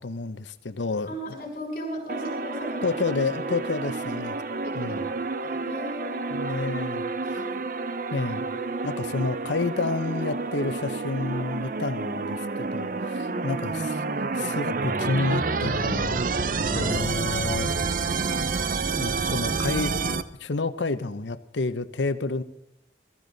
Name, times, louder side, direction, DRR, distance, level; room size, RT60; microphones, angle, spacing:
voice 1, 0.0-1.2 2.8-4.4 4.7-5.1 6.3-7.5 8.1-8.5 8.8-14.0 14.3-16.2 16.7-17.7 19.0-22.4, left 3 dB, 85° left, 13 dB, 0.8 m, -30 dB
voice 2, 1.1-3.0 3.6-3.7 4.6-6.4 7.3-7.6 13.3-13.5 16.7-17.0, equal, 50° left, 0 dB, 6.4 m, -37 dB
sound 1, 2.1-20.2, right 4 dB, 50° right, 0.6 m, -29 dB
22.0 x 13.5 x 4.0 m, 0.76 s
head